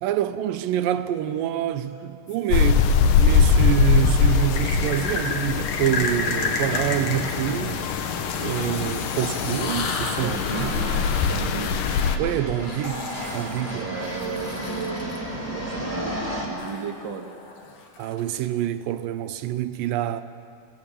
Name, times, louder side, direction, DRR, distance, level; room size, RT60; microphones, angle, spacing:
voice 1, 0.0-8.1 8.4-10.7 12.2-13.8 18.0-20.2, right 11 dB, 85° right, 2.4 m, -27 dB
sound 1, 2.3-3.2 4.5-15.2 16.6-18.4, left 3 dB, 50° left, 2.7 m, -33 dB
sound 2, 2.5-12.2, left 6 dB, 75° left, 2.5 m, -22 dB
sound 3, 6.3-16.5, equal, 15° left, 3.6 m, -34 dB
voice 2, 10.2-11.9 13.7-16.2 16.5-17.3, right 6 dB, 40° right, 2.1 m, -35 dB
26.5 x 18.0 x 8.8 m
omnidirectional pair, 3.9 m